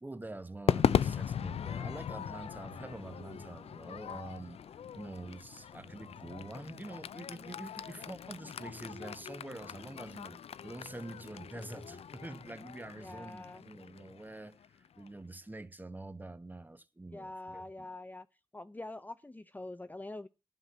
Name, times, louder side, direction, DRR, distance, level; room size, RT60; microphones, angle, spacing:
voice 1, 0.0-4.6 4.9-17.9, right 2 dB, 15° right, 1.1 m, -46 dB
Crowd / Fireworks, 0.7-15.1, left 8 dB, 85° left, 0.5 m, -37 dB
voice 2, 13.0-13.6 17.1-18.3 18.5-20.3, left 2 dB, 15° left, 0.6 m, -45 dB
11.0 x 5.9 x 8.1 m
cardioid pair, 75°, 10 cm